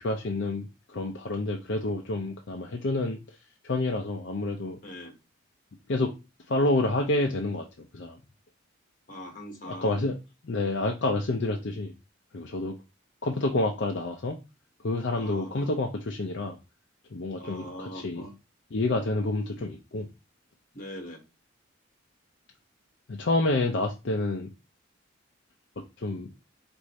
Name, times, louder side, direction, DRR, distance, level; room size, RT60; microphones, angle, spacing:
voice 1, 0.0-3.2 3.6-4.8 5.9-6.1 6.5-7.7 7.9-8.2 9.6-10.2 10.4-11.9 12.3-12.8 13.2-14.4 14.8-16.6 17.1-18.2 18.7-20.1 23.1-24.5 26.0-26.3, left 2 dB, 60° left, 0.5 m, -28 dB
voice 2, 4.8-5.1 9.1-10.0 15.1-15.7 17.4-18.3 20.7-21.2, equal, 40° left, 1.3 m, -42 dB
4.9 x 2.6 x 4.1 m
head